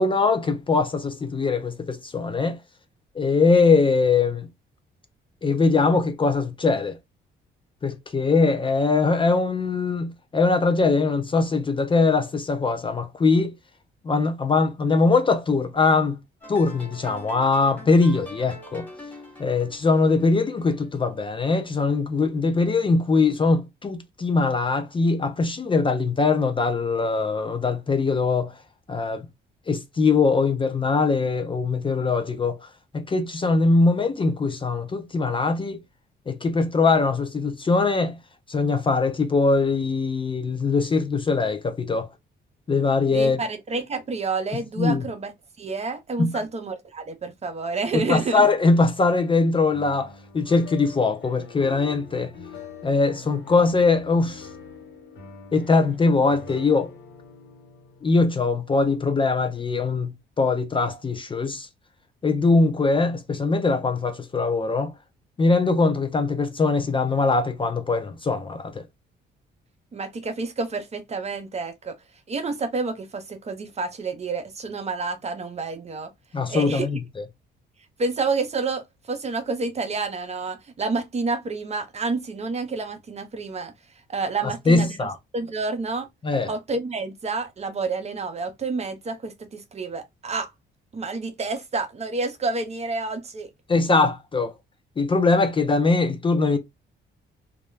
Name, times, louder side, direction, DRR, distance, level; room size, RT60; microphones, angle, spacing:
voice 1, 0.0-2.6 3.2-4.5 5.4-6.9 7.8-13.5 14.0-16.1 16.5-18.9 19.4-28.5 28.9-29.2 29.7-32.6 32.9-35.8 36.3-38.2 38.5-42.1 42.7-43.4 44.8-45.0 46.2-46.4 47.9-52.3 52.8-54.5 55.5-56.9 58.0-61.7 62.2-64.9 65.4-68.8 76.3-77.0 84.7-85.2 86.2-86.5 93.7-94.5 95.0-96.6, left 3 dB, 25° left, 0.4 m, -22 dB
sound 1, 16.4-21.5, left 1 dB, 10° left, 1.1 m, -44 dB
voice 2, 43.1-45.3 45.6-48.5 69.9-72.0 72.3-76.1 76.5-76.9 78.0-83.7 84.1-85.0 85.3-86.1 86.5-90.5 90.9-93.5, right 3 dB, 35° right, 0.6 m, -29 dB
sound 2, 49.7-59.6, left 5 dB, 65° left, 1.2 m, -45 dB
2.3 x 2.1 x 3.1 m
cardioid pair, 90°, 20 cm